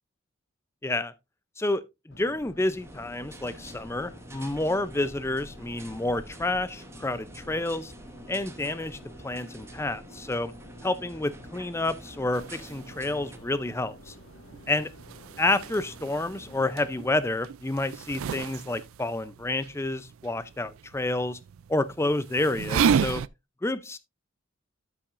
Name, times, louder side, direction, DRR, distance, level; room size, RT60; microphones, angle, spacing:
voice 1, 0.8-1.1 1.6-7.9 8.3-9.0 9.2-10.5 10.8-14.1 14.7-14.9 15.4-21.4 21.7-23.2 23.6-24.0, left 2 dB, 10° left, 0.5 m, -29 dB
Subway metro underground, 2.1-17.1, left 1 dB, 70° left, 1.9 m, -49 dB
sound 1, 2.8-13.4, right 1 dB, 15° right, 0.9 m, -47 dB
sound 2, 12.3-23.3, right 7 dB, 80° right, 0.4 m, -33 dB
12.5 x 5.9 x 2.5 m
head